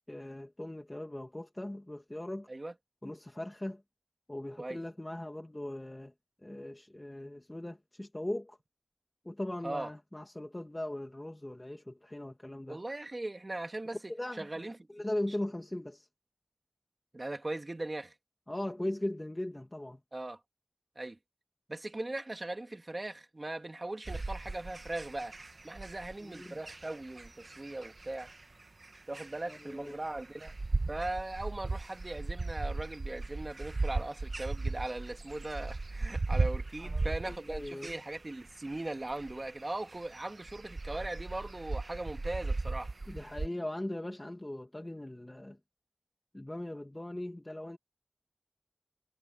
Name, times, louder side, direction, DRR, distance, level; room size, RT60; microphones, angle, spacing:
voice 1, 0.1-2.5 3.0-3.8 4.3-6.1 6.4-8.6 9.2-12.8 14.1-16.1 18.5-20.0 26.2-26.6 29.5-30.0 36.8-37.9 43.1-45.6 46.3-47.8, left 1 dB, 30° left, 2.3 m, -39 dB
voice 2, 12.7-14.0 14.4-14.8 17.1-18.1 20.1-20.4 21.0-21.2 21.7-25.4 25.6-28.3 29.1-30.5 30.9-42.9, right 2 dB, 55° right, 2.8 m, -39 dB
sound 1, 24.1-43.5, right 3 dB, 80° right, 1.1 m, -37 dB
wide cardioid pair, 45°, 0 cm